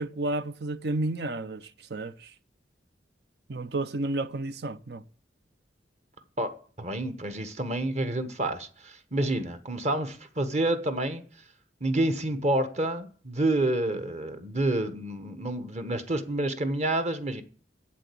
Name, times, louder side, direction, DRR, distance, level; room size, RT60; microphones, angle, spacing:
voice 1, 0.0-2.3 3.5-5.0, right 2 dB, 65° right, 0.7 m, -31 dB
voice 2, 6.8-11.2 11.8-17.4, right 1 dB, 40° right, 1.2 m, -28 dB
8.4 x 7.5 x 8.4 m
head